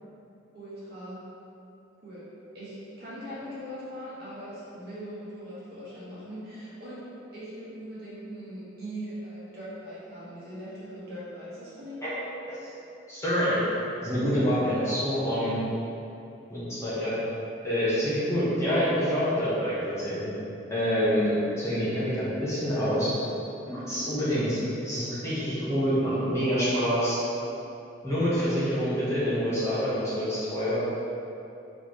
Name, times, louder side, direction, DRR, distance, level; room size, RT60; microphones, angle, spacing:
voice 1, 0.5-1.2 2.0-2.3 2.5-7.0 7.3-12.3, equal, 55° right, -10 dB, 1.4 m, -40 dB
voice 2, 13.1-13.6 14.0-15.6 16.5-17.2 17.6-20.3 20.7-23.1 23.6-24.6 24.8-27.2 28.0-30.8, equal, 15° left, -11 dB, 1.1 m, -26 dB
4.2 x 3.9 x 3.1 m, 2.8 s
head